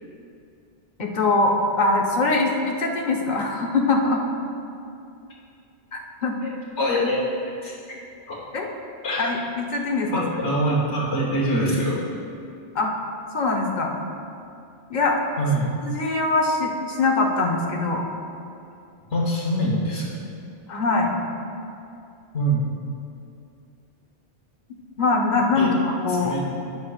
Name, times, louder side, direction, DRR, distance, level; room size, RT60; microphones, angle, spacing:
voice 1, 1.0-4.2 5.9-6.4 8.5-8.7 9.2-10.1 12.7-12.9 13.3-13.9 14.9-15.2 15.8-18.0 20.7-21.1 25.0-26.3, left 3 dB, 45° left, 0 dB, 1.1 m, -22 dB
voice 2, 6.4-7.2 7.5-7.7 8.3-8.5 9.0-9.3 10.1-12.0 15.4-15.7 19.1-20.3 22.3-22.7 25.5-25.7 26.1-26.4, right 1 dB, 90° left, -6 dB, 1.5 m, -24 dB
19.0 x 6.6 x 2.4 m, 2.5 s
omnidirectional pair, 1.1 m